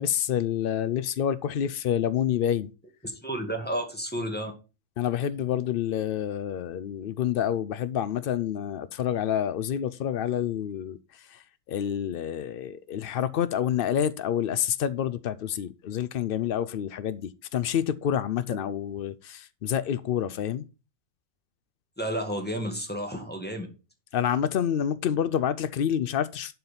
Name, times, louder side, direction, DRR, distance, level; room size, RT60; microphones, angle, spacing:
voice 1, 0.0-2.7 5.0-20.7 24.1-26.6, left 9 dB, 85° left, 0.4 m, -28 dB
voice 2, 3.0-4.5 22.0-23.7, right 1 dB, 5° left, 1.9 m, -31 dB
11.0 x 4.7 x 5.4 m
omnidirectional pair, 1.6 m